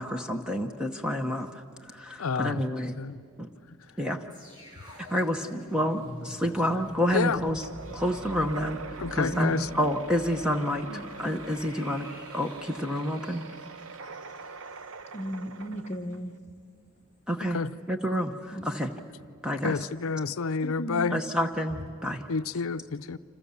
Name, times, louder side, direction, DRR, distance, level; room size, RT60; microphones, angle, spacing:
voice 1, 0.0-3.0 3.4-3.5 4.0-4.2 5.0-10.9 11.2-13.4 17.3-17.6 17.9-18.9 19.4-19.9 21.1-22.2, equal, 5° right, 0.9 m, -29 dB
voice 2, 2.2-2.6 3.0-3.2 7.1-7.4 9.0-9.7 17.5-17.7 19.6-21.2 22.3-23.2, left 5 dB, 70° left, 0.6 m, -29 dB
sound 1, 4.3-15.5 15.8-16.0, left 1 dB, 20° right, 6.5 m, -47 dB
sound 2, 7.6-16.4, right 4 dB, 65° right, 0.8 m, -43 dB
voice 3, 10.9-11.2 15.1-16.5 18.5-18.7 20.6-21.4, equal, 30° left, 0.8 m, -37 dB
29.5 x 26.5 x 7.1 m
head